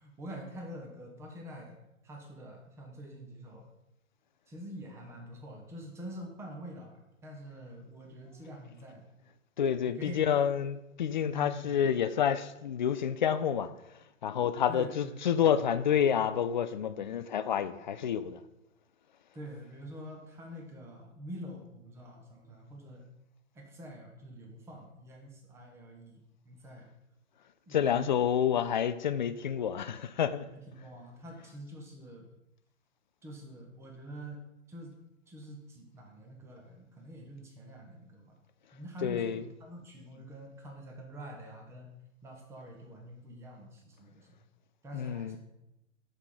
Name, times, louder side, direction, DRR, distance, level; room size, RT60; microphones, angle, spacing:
voice 1, 0.0-1.8 2.0-3.7 4.5-9.0 9.9-10.2 11.3-11.9 14.7-15.5 19.3-23.0 23.5-26.9 27.7-28.3 30.5-32.3 33.2-34.4 34.7-35.0 35.3-38.4 38.7-41.9 42.2-44.3 44.8-45.4, equal, 5° right, 1 dB, 0.8 m, -46 dB
voice 2, 9.6-13.7 14.2-18.4 27.7-30.5 39.0-39.4 44.9-45.4, left 8 dB, 40° left, 12 dB, 0.4 m, -29 dB
6.6 x 4.9 x 5.3 m, 0.89 s
figure-of-eight pair, 130°, 39 cm